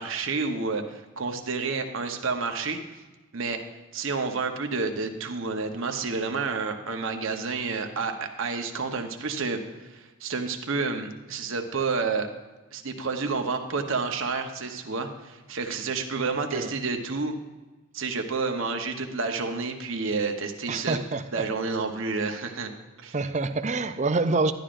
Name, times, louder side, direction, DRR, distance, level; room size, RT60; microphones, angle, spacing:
voice 1, 0.0-2.8 3.3-3.6 3.9-9.6 9.9-12.3 12.7-17.4 17.9-21.0 21.3-22.7 23.0-23.2, right 4 dB, 60° right, 4 dB, 0.9 m, -29 dB
voice 2, 20.7-21.2 23.1-24.5, right 3 dB, 30° right, 10 dB, 0.4 m, -26 dB
12.0 x 11.5 x 2.5 m, 1.2 s
head